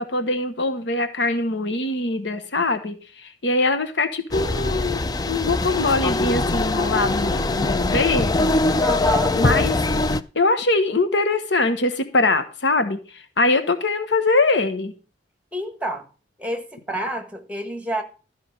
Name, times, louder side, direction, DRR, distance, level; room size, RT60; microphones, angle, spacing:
voice 1, 0.0-5.0 5.3-8.6 9.3-9.7 10.3-14.9, left 2 dB, 70° left, 1.1 m, -22 dB
sound 1, 4.3-10.2, left 2 dB, 20° left, 0.4 m, -22 dB
voice 2, 8.8-9.4 15.5-16.1 16.4-18.0, right 1 dB, 10° right, 1.4 m, -28 dB
13.0 x 5.0 x 6.6 m
head